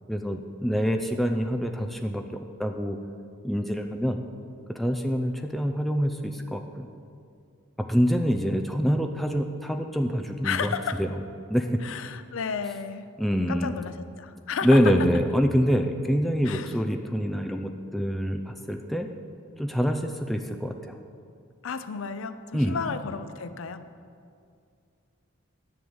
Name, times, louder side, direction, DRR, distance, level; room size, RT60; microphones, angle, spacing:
voice 1, 0.1-3.0 3.4-4.2 4.7-6.9 7.8-10.7 11.0-11.1 11.5-11.8 13.2-13.7 14.6-19.1 19.6-21.0 22.5-22.8, equal, ahead, 4 dB, 0.4 m, -25 dB
voice 2, 10.4-11.0 11.8-13.0 13.5-14.9 16.4-16.7 21.6-23.8, left 6 dB, 85° left, 11 dB, 0.5 m, -32 dB
10.5 x 5.4 x 7.9 m, 2.4 s
head